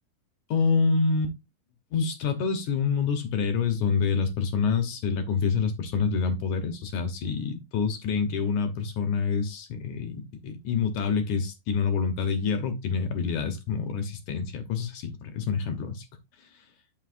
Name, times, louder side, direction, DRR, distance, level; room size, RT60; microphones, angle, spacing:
voice 1, 0.5-1.3 1.9-16.1, left 5 dB, 70° left, 2.0 m, -27 dB
11.0 x 5.7 x 2.5 m
omnidirectional pair, 4.5 m